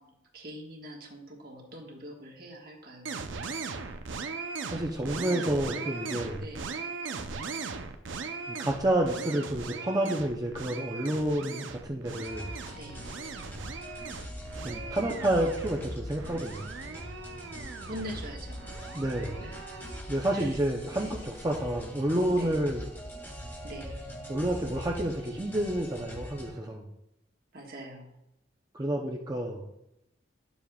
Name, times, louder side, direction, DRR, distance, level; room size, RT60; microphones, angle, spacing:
voice 1, 0.0-3.2 6.4-6.7 12.8-13.1 17.9-18.7 19.4-19.8 20.3-20.6 21.0-21.2 22.3-22.6 23.6-24.0 27.5-28.1, equal, 50° right, 1 dB, 1.4 m, -43 dB
sound 1, 3.0-20.0, right 4 dB, 80° right, 0.6 m, -39 dB
voice 2, 4.7-6.5 8.5-12.5 14.6-16.7 18.9-19.4 20.1-22.9 24.3-26.9 28.7-29.7, right 1 dB, 20° right, 0 dB, 0.6 m, -29 dB
sound 2, 12.1-26.5, equal, 10° left, 1.2 m, -42 dB
10.5 x 7.1 x 2.3 m, 0.85 s
head